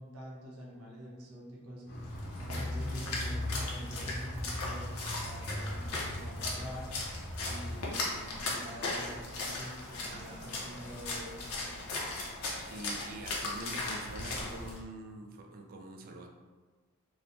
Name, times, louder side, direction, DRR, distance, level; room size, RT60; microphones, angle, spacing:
voice 1, 0.0-1.8 2.4-6.9 7.4-11.7, equal, 80° right, -3 dB, 0.7 m, -46 dB
Car, 1.9-8.1 8.3-8.4, left 1 dB, 50° left, 0.6 m, -39 dB
Splash splatter, 2.0-14.8, left 2 dB, 90° left, 0.6 m, -38 dB
voice 2, 10.1-10.5 12.7-16.3, right 2 dB, 40° right, 2 dB, 0.3 m, -45 dB
3.0 x 2.1 x 2.6 m, 1.4 s
head